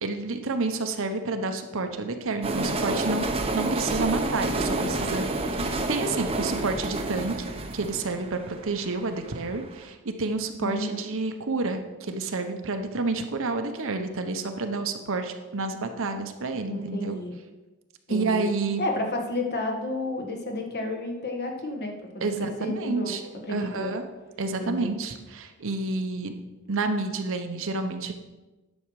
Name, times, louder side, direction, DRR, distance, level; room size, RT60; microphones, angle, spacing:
voice 1, 0.0-7.4 7.7-17.2 18.1-18.8 22.2-24.0 24.4-26.3 26.7-28.1, right 3 dB, 60° right, 6 dB, 0.9 m, -29 dB
sound 1, 2.4-9.5, right 2 dB, 25° right, 0.8 m, -29 dB
voice 2, 10.6-11.0 16.7-17.3 18.1-18.4 18.8-23.1 23.5-23.9 24.6-24.9, left 1 dB, 50° left, 2 dB, 1.5 m, -31 dB
10.5 x 6.4 x 4.8 m, 1.1 s
head